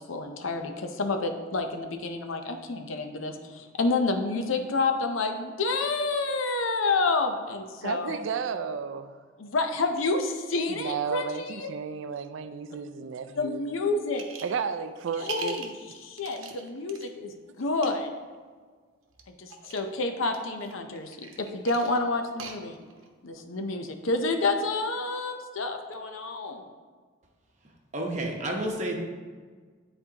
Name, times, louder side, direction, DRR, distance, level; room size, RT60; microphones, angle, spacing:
voice 1, 0.0-8.2 9.4-11.7 13.4-14.2 15.2-15.7 16.0-18.1 19.3-22.8 23.2-26.7, left 3 dB, 85° left, 6 dB, 0.6 m, -29 dB
voice 2, 7.8-9.2 10.7-13.6 14.4-15.6 16.4-16.6, right 6 dB, 75° right, 11 dB, 0.3 m, -33 dB
sound 1, 14.1-14.6 14.9-17.1 17.6-17.9 19.1-19.8 20.3-23.1, right 5 dB, 90° right, 0.8 m, -41 dB
voice 3, 27.9-29.0, right 1 dB, 35° right, 0 dB, 0.9 m, -30 dB
9.8 x 4.3 x 2.8 m, 1.5 s
head